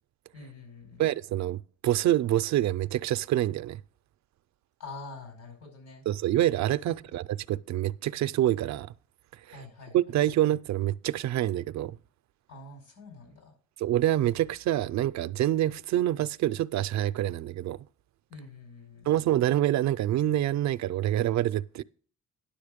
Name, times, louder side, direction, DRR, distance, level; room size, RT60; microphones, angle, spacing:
voice 1, 0.3-1.1 4.8-6.0 6.8-7.0 9.5-10.1 12.5-13.5 18.3-19.1, left 3 dB, 85° left, 5.1 m, -46 dB
voice 2, 1.0-3.8 6.1-8.9 9.9-12.0 13.8-17.8 19.1-21.8, right 13 dB, 65° right, 0.5 m, -26 dB
10.5 x 6.7 x 5.1 m
cardioid pair, 90°, 30 cm